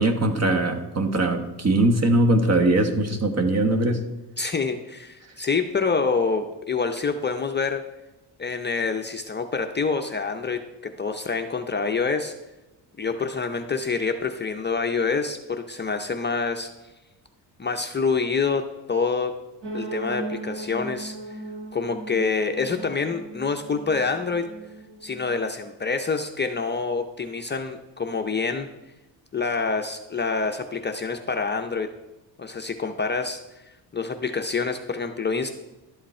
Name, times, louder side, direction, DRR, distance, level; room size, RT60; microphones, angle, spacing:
voice 1, 0.0-4.0, right 2 dB, 35° right, 7 dB, 1.3 m, -21 dB
voice 2, 4.4-7.8 8.4-12.3 13.0-16.7 17.6-18.6 18.9-19.3 19.7-21.2 21.7-24.5 25.0-28.7 29.3-31.9 32.4-33.4 33.9-35.5, left 4 dB, 25° left, 4 dB, 0.6 m, -26 dB
sound 1, 19.6-25.5, right 2 dB, 85° right, 3.3 m, -37 dB
12.0 x 8.0 x 4.3 m, 1.0 s
cardioid pair, 120°, 44 cm